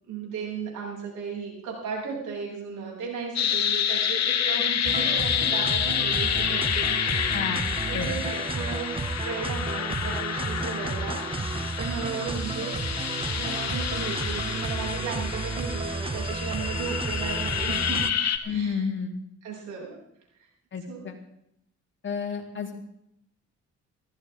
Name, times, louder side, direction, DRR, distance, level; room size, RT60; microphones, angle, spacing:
voice 1, 0.0-7.3 7.8-12.8 13.3-18.0 18.5-18.8 19.4-20.0 20.4-20.5 20.9-21.1, right 5 dB, 80° right, -2 dB, 7.4 m, -35 dB
sound 1, 3.4-18.4, left 9 dB, 60° left, 1.6 m, -28 dB
sound 2, 4.8-18.1, right 3 dB, 20° right, 0.7 m, -32 dB
voice 2, 7.3-7.7 7.9-8.1 18.4-19.1 20.7-21.2 22.0-23.0, left 6 dB, 40° left, 2 dB, 3.3 m, -31 dB
19.0 x 15.5 x 3.6 m, 0.74 s
cardioid pair, 90°, 30 cm